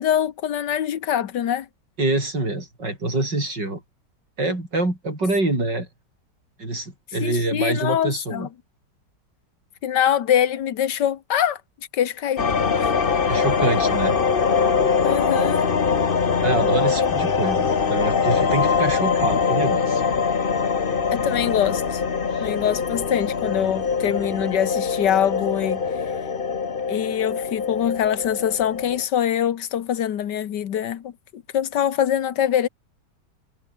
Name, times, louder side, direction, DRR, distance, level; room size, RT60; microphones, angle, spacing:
voice 1, 0.0-1.7 7.2-8.5 9.8-11.6 11.9-12.5 12.8-12.9 15.0-15.7 21.1-22.0 22.4-25.8 26.9-32.7, left 10 dB, 80° left, 1.7 m, -24 dB
voice 2, 2.0-3.8 4.4-5.9 6.6-8.5 13.3-14.2 16.4-20.0 22.3-22.5, right 2 dB, 85° right, 8.5 m, -25 dB
sound 1, 12.4-29.0, left 5 dB, 35° left, 1.3 m, -23 dB
omnidirectional pair, 1.8 m